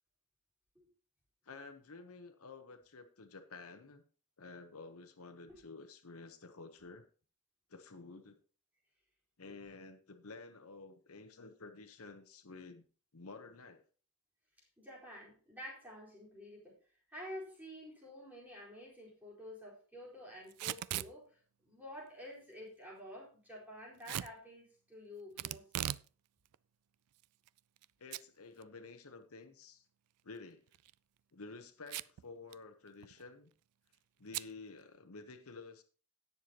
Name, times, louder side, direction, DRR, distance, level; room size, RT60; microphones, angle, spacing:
voice 1, 1.4-4.0 4.4-7.0 7.7-8.4 9.4-12.9 13.1-13.8 28.0-29.8 30.2-30.6 31.3-33.5 34.2-35.8, left 3 dB, 75° left, 8 dB, 1.0 m, -51 dB
voice 2, 14.8-16.7 17.1-25.6, equal, 10° right, -6 dB, 4.4 m, -50 dB
Packing tape duct tape / Tearing, 20.5-21.1 24.0-24.3 25.4-26.1 26.4-26.5 27.2-27.8 28.1-28.2 28.6-28.7 30.7-30.9 31.9-32.2 32.5-32.6 32.9-33.2 34.3-34.5, right 13 dB, 90° right, 0.4 m, -39 dB
17.5 x 6.9 x 3.0 m, 0.40 s
head